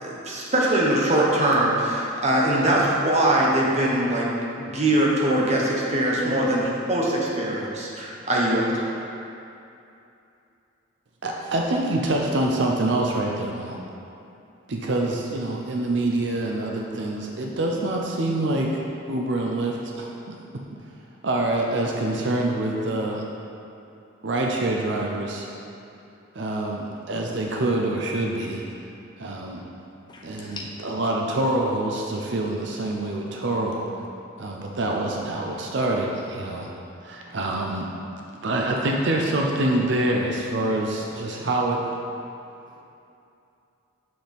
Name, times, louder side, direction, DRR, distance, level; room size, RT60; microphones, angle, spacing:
voice 1, 0.0-4.3 4.6-8.9, right 1 dB, 35° right, -3 dB, 1.0 m, -22 dB
voice 2, 11.2-13.8 14.7-18.8 19.1-20.3 21.2-23.2 24.2-25.5 26.3-28.6 29.2-29.6 30.2-33.8 34.4-36.7 37.0-37.9 38.4-41.8, right 1 dB, 60° right, 0 dB, 0.6 m, -26 dB
voice 3, 30.1-30.8 37.3-37.4 42.7-42.8, left 3 dB, 25° left, -2 dB, 0.6 m, -41 dB
7.8 x 5.9 x 3.5 m, 2.7 s
head